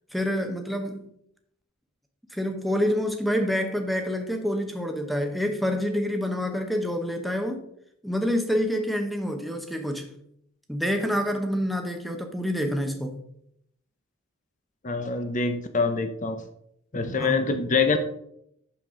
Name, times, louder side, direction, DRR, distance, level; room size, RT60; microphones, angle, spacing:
voice 1, 0.1-1.1 2.3-7.6 8.0-10.1 10.7-13.2 17.2-17.3, equal, ahead, 0.8 m, -27 dB
voice 2, 14.8-16.4 16.9-18.0, left 4 dB, 35° left, 0.7 m, -25 dB
8.6 x 6.8 x 3.8 m
head